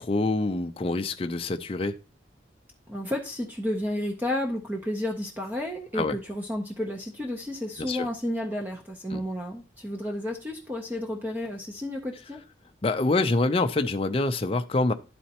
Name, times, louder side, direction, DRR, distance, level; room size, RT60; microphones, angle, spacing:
voice 1, 0.0-1.9 5.9-6.2 7.8-8.1 9.1-9.2 12.8-14.9, left 2 dB, 30° left, 0.4 m, -26 dB
voice 2, 2.9-12.4, left 1 dB, 10° right, 0.6 m, -32 dB
11.5 x 4.2 x 2.8 m
head